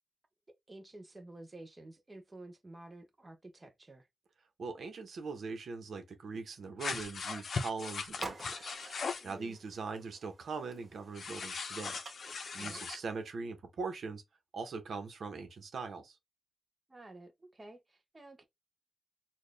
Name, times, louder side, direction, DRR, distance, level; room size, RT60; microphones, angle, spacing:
voice 1, 0.7-4.1 9.2-9.6 12.6-12.9 16.9-18.4, right 2 dB, 25° right, 0.7 m, -51 dB
voice 2, 4.6-8.7 9.2-12.0 12.5-14.2 14.5-16.2, right 4 dB, 70° right, 1.0 m, -41 dB
sound 1, 6.8-9.3 11.1-13.0, left 5 dB, 65° left, 0.6 m, -39 dB
sound 2, 8.1-13.3, right 2 dB, 40° right, 1.9 m, -50 dB
4.3 x 2.4 x 3.3 m
wide cardioid pair, 110°, 0 cm